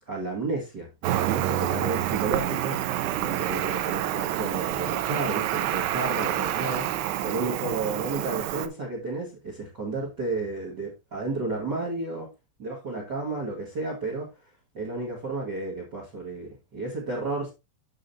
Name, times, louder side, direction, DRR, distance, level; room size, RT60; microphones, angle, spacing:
voice 1, 0.1-12.3 12.6-14.3 14.7-17.5, right 3 dB, 55° right, 1.1 m, -32 dB
Cricket, 1.0-8.7, right 13 dB, 80° right, 2.7 m, -28 dB
8.3 x 6.6 x 2.7 m
omnidirectional pair, 4.9 m